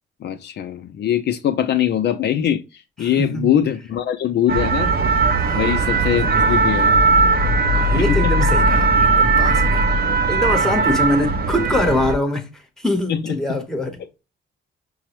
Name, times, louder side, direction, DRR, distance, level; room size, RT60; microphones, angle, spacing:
voice 1, 0.2-4.9 5.5-6.9 7.9-8.5 13.1-13.3, left 10 dB, 60° left, 0.4 m, -22 dB
voice 2, 3.0-3.6 5.4-7.0 7.7-9.9 10.3-14.0, left 1 dB, ahead, 0.9 m, -24 dB
sound 1, 4.5-12.1, right 3 dB, 50° right, 0.6 m, -18 dB
5.4 x 2.0 x 2.9 m
cardioid pair, 90°, 20 cm